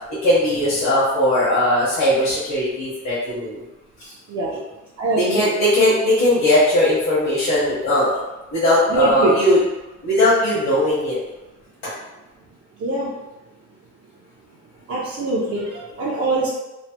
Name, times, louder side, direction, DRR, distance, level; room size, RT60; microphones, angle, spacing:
voice 1, 0.2-3.6 4.0-4.1 4.5-4.6 5.2-8.1 8.5-9.6 10.0-11.2 11.8-11.9, left 1 dB, 65° left, -11 dB, 1.1 m, -18 dB
voice 2, 5.0-5.5 8.9-9.3 12.8-13.1 14.9-16.5, right 2 dB, 50° right, -6 dB, 0.5 m, -22 dB
3.1 x 2.1 x 2.8 m, 1.0 s
cardioid pair, 155°, 30 cm